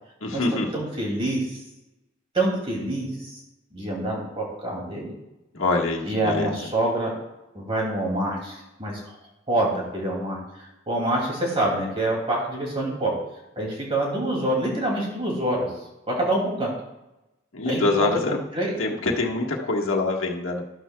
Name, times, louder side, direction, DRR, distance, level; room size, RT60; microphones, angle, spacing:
voice 1, 0.2-0.7 5.5-6.5 17.5-18.4 18.8-20.6, left 2 dB, 90° left, -1 dB, 1.6 m, -25 dB
voice 2, 0.7-1.6 2.3-3.4 3.7-5.1 6.0-7.1 7.5-9.2 9.5-13.1 13.6-15.7 16.1-16.7 17.7-18.7, right 1 dB, 30° right, -2 dB, 2.5 m, -26 dB
13.5 x 11.5 x 2.3 m, 0.96 s
head